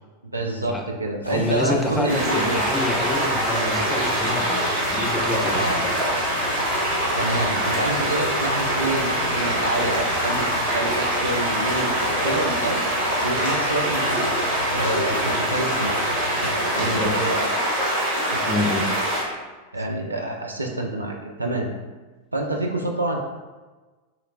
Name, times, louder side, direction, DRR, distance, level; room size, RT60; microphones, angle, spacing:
voice 1, 0.2-2.6 5.5-5.8 7.2-12.8 13.2-14.2 14.7-16.1 16.4-17.6 18.3-18.6 19.7-21.7 22.3-23.2, right 2 dB, 80° right, 1 dB, 0.3 m, -27 dB
sound 1, 1.2-17.4, left 1 dB, 80° left, 0.4 m, -37 dB
voice 2, 1.3-4.6 4.9-6.1 16.8-17.2 18.4-18.9, left 2 dB, 10° left, 1 dB, 0.4 m, -27 dB
sound 2, 2.1-19.2, right 1 dB, 45° right, 1.2 m, -24 dB
3.1 x 2.9 x 2.6 m, 1.3 s
figure-of-eight pair, 90°, 0 cm